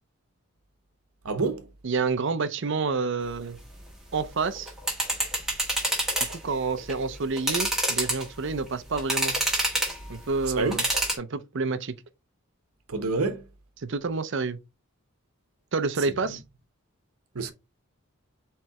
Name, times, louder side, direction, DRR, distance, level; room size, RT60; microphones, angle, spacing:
voice 1, 1.2-1.6 10.6-10.8 12.9-13.4 16.3-16.4 17.3-17.5, right 3 dB, 80° right, 0.9 m, -27 dB
voice 2, 1.8-3.6 4.1-4.7 6.3-9.4 10.1-10.9 11.2-11.9 13.8-14.6 15.7-16.4, right 4 dB, 55° right, 0.5 m, -28 dB
sound 1, 4.6-6.4 6.8-6.9 7.4-8.5 9.0-10.0 10.7-11.2, right 1 dB, ahead, 1.4 m, -26 dB
4.4 x 3.2 x 3.5 m
head